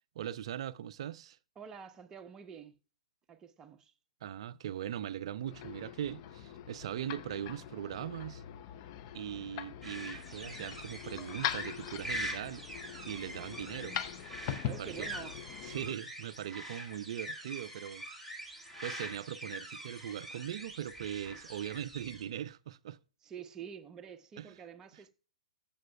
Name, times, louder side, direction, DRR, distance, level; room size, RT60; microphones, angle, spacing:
voice 1, 0.2-1.4 4.2-8.4 9.1-12.6 13.1-14.0 14.6-15.1 15.6-18.0 18.8-23.0 24.4-24.5, right 10 dB, 50° right, 0.4 m, -40 dB
voice 2, 1.6-2.8 3.3-3.9 14.6-15.4 23.2-25.1, right 7 dB, 15° right, 0.7 m, -47 dB
sound 1, 5.4-15.9, left 10 dB, 35° left, 0.6 m, -42 dB
sound 2, 9.8-22.2, equal, ahead, 1.5 m, -44 dB
14.0 x 7.1 x 2.2 m
figure-of-eight pair, 115°, 4 cm